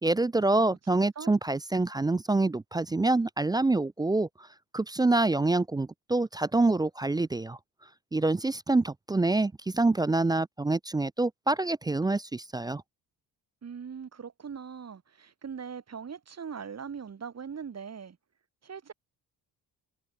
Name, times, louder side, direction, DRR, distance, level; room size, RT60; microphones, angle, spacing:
voice 1, 0.0-4.3 4.7-7.6 8.1-12.8, right 2 dB, 10° right, 0.3 m, -26 dB
voice 2, 0.5-1.3 13.6-18.2 18.6-18.9, right 6 dB, 40° right, 5.7 m, -41 dB
cardioid pair, 115°, 40 cm